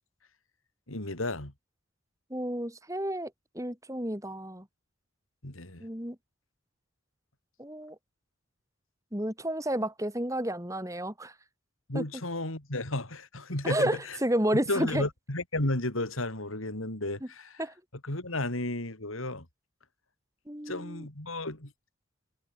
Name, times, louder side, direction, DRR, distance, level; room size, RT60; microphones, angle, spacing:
voice 1, 0.9-1.5 5.4-5.8 11.9-14.2 14.7-17.6 18.0-19.5 20.7-21.7, left 2 dB, 85° left, 4.2 m, -33 dB
voice 2, 2.3-3.3 3.5-4.6 5.8-6.1 7.6-7.9 9.1-11.3 11.9-12.0 13.6-15.0 17.6-17.7 20.5-21.0, right 1 dB, 15° right, 3.5 m, -31 dB
head